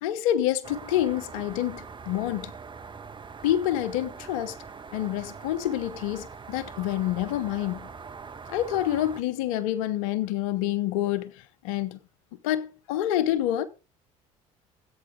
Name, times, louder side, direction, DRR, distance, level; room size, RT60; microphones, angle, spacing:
voice 1, 0.0-2.5 3.4-4.6 4.9-7.9 8.5-12.0 12.4-13.7, left 12 dB, 80° left, 0.9 m, -27 dB
sound 1, 0.6-9.2, right 5 dB, 30° right, 1.5 m, -43 dB
18.5 x 8.8 x 3.7 m
hypercardioid pair, 65°, 17 cm